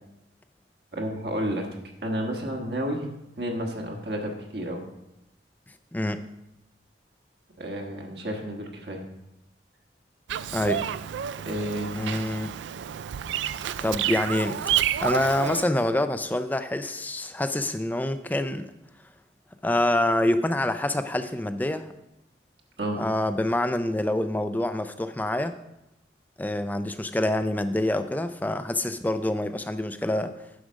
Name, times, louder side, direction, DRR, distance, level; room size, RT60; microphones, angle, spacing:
voice 1, 0.9-1.7 2.0-3.1 3.4-4.8 7.6-9.0 11.4-12.1 22.8-23.0, equal, 60° right, 1 dB, 1.4 m, -31 dB
voice 2, 5.9-6.3 10.5-10.9 11.9-12.5 13.8-14.7 15.0-18.7 19.6-21.9 23.0-25.5 26.4-30.3, left 1 dB, 10° left, 10 dB, 0.4 m, -26 dB
Bird vocalization bird call bird song, 10.3-15.6, right 10 dB, 80° right, 0.3 m, -29 dB
10.0 x 4.9 x 6.4 m, 0.88 s
head